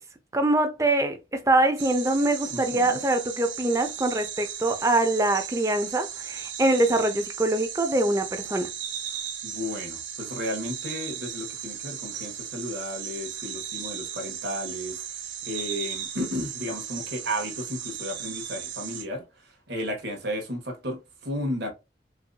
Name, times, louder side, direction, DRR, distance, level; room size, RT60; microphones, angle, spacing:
voice 1, 0.3-8.7, right 2 dB, 15° right, 0.6 m, -24 dB
sound 1, 1.8-19.0, right 9 dB, 80° right, 0.8 m, -36 dB
voice 2, 2.5-3.0 9.4-21.7, equal, 60° right, 1.3 m, -34 dB
4.7 x 2.6 x 2.2 m
head